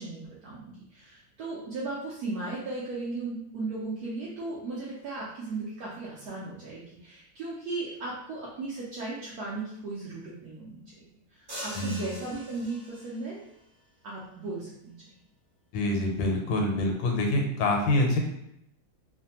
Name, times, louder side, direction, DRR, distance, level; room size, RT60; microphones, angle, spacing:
voice 1, 0.0-10.8 11.3-13.4 14.0-15.2, right 3 dB, 70° right, -7 dB, 1.0 m, -36 dB
sound 1, 11.5-13.3, equal, 50° right, 0.5 m, -42 dB
voice 2, 11.8-12.1 15.7-18.2, left 2 dB, 85° left, 1 dB, 1.4 m, -26 dB
3.2 x 2.1 x 2.8 m, 0.77 s
omnidirectional pair, 2.0 m